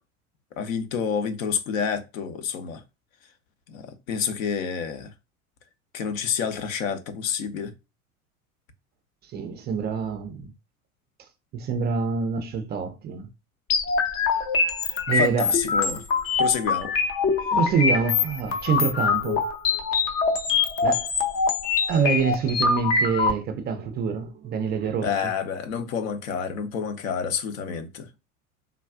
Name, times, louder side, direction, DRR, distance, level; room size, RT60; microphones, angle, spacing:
voice 1, 0.6-2.8 3.7-5.1 5.9-7.7 14.8-16.0 16.4-16.9 25.0-28.2, left 7 dB, 65° left, 0.7 m, -29 dB
voice 2, 9.2-10.5 11.5-13.3 15.1-15.5 17.5-19.4 20.8-21.1 21.9-25.1, right 6 dB, 25° right, 0.4 m, -26 dB
sound 1, 13.7-23.3, left 5 dB, 35° left, 0.6 m, -24 dB
3.5 x 2.3 x 2.3 m
hypercardioid pair, 80°, 43 cm